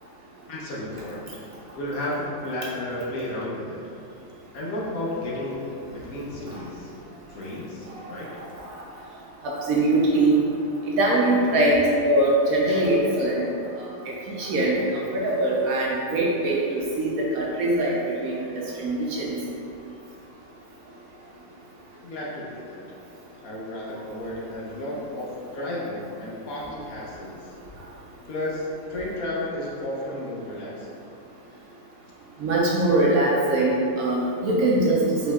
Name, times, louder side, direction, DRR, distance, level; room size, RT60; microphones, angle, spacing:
voice 1, 0.5-1.2 1.8-3.8 4.5-5.7 5.9-6.9 7.3-8.3 22.0-22.8 23.4-25.3 25.5-27.4 28.3-30.9, left 1 dB, 65° left, -5 dB, 1.1 m, -32 dB
voice 2, 9.4-10.4 11.0-13.4 14.1-19.4 32.4-35.3, right 1 dB, 65° right, -4 dB, 1.0 m, -22 dB
4.9 x 4.2 x 2.3 m, 2.8 s
omnidirectional pair, 1.8 m